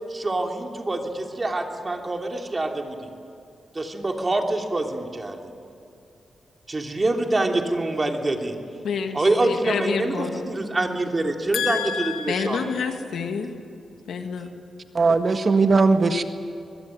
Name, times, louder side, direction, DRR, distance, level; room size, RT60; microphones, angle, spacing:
voice 1, 0.1-3.1 3.7-5.5 6.7-8.6 9.1-12.6, right 2 dB, 30° right, 3 dB, 3.0 m, -25 dB
voice 2, 8.8-10.5 11.5-13.5 14.1-14.5, left 6 dB, 85° left, 5 dB, 2.2 m, -28 dB
voice 3, 15.0-16.2, right 4 dB, 45° right, 7 dB, 1.7 m, -18 dB
23.5 x 21.5 x 9.3 m, 2.6 s
cardioid pair, 95°, 0 cm